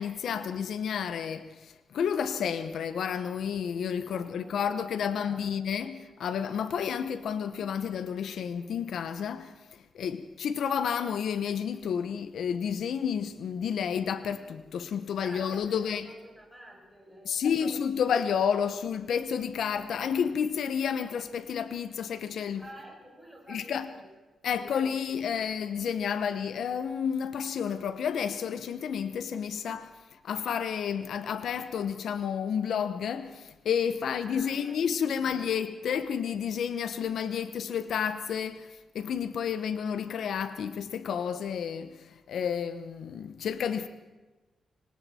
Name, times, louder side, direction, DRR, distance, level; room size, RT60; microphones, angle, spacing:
voice 1, 0.0-16.1 17.2-22.7 23.5-23.9 24.4-29.9 30.2-38.7 38.9-43.9, left 7 dB, 75° left, 1.0 m, -31 dB
voice 2, 4.1-5.4 15.2-17.8 22.6-24.2 34.0-34.8 35.2-35.4 35.7-35.9, right 1 dB, 5° right, 6.8 m, -50 dB
26.0 x 24.0 x 4.4 m
wide cardioid pair, 135°, 0 cm